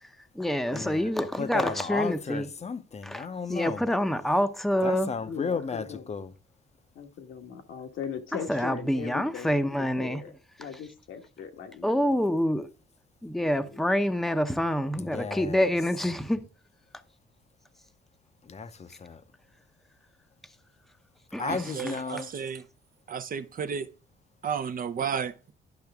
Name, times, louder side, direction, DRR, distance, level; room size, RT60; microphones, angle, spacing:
voice 1, 0.0-2.5 3.0-5.1 8.5-10.2 11.8-12.7 13.2-16.4 21.3-21.7, equal, ahead, 0.7 m, -27 dB
voice 2, 0.7-1.1 1.4-3.8 4.8-6.3 15.0-15.7 18.4-19.2 21.4-22.3, left 5 dB, 35° left, 0.7 m, -34 dB
voice 3, 5.2-6.1 6.9-10.3 10.6-12.1 13.6-13.8, left 7 dB, 75° left, 1.4 m, -39 dB
voice 4, 21.4-22.6 23.1-23.9 24.4-25.5, right 7 dB, 45° right, 0.6 m, -33 dB
10.5 x 5.7 x 3.5 m
cardioid pair, 90°, 20 cm